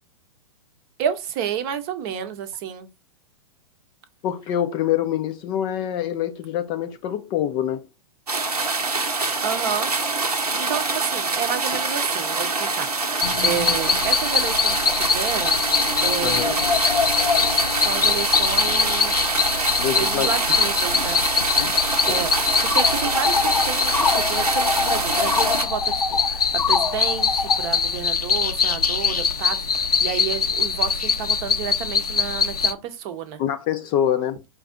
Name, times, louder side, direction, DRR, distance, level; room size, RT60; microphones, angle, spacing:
voice 1, 1.0-2.9 9.4-9.9 10.6-15.6 16.0-16.7 17.8-19.3 19.9-21.2 22.1-33.4, right 8 dB, 40° right, 0.7 m, -30 dB
voice 2, 4.2-7.9 16.2-16.5 19.8-20.3 21.4-21.7 22.1-22.2 33.4-34.4, left 10 dB, 25° left, 0.3 m, -25 dB
sound 1, 8.3-25.6, right 3 dB, 85° right, 0.9 m, -25 dB
sound 2, 13.2-32.7, left 6 dB, 85° left, 0.5 m, -22 dB
4.7 x 2.6 x 3.5 m
figure-of-eight pair, 110°, 19 cm